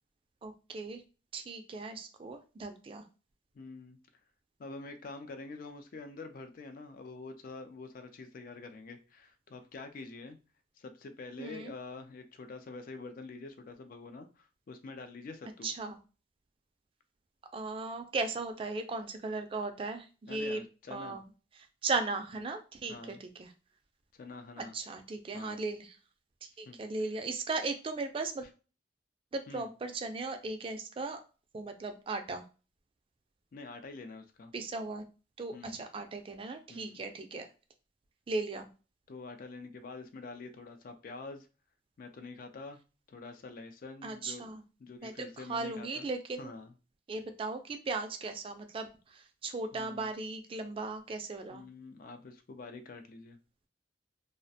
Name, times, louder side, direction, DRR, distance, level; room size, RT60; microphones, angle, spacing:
voice 1, 0.4-1.0 1.3-3.0 11.4-11.7 15.6-16.0 17.5-20.6 20.9-21.2 21.6-23.5 24.6-26.0 26.4-28.4 29.3-31.2 31.5-32.4 34.5-35.0 35.4-37.5 38.3-38.7 44.0-44.6 45.0-46.5 47.1-51.6, right 3 dB, 30° right, 7 dB, 0.3 m, -37 dB
voice 2, 3.5-4.0 4.6-10.4 10.8-15.7 20.3-21.2 22.9-23.2 24.1-24.7 25.3-25.6 26.7-26.8 29.5-29.7 33.5-34.5 35.5-35.8 36.7-37.0 39.1-41.5 42.0-42.8 43.1-44.4 44.8-46.1 46.4-46.7 49.7-50.1 51.5-53.4, left 3 dB, 50° left, 8 dB, 0.3 m, -46 dB
2.3 x 2.1 x 2.6 m, 0.33 s
head